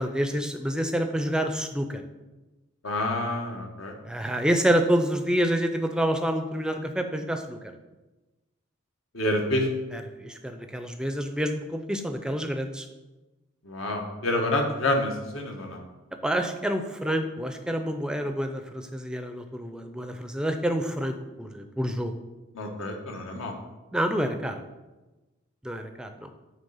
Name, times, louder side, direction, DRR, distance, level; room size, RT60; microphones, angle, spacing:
voice 1, 0.0-2.0 4.0-7.7 10.2-12.9 16.2-22.1 23.9-24.6 25.6-26.3, equal, 5° right, 7 dB, 0.4 m, -28 dB
voice 2, 2.8-4.0 9.1-9.7 13.6-15.8 22.5-23.5, left 1 dB, 75° left, 2 dB, 1.2 m, -28 dB
9.0 x 3.3 x 5.5 m, 1.1 s
head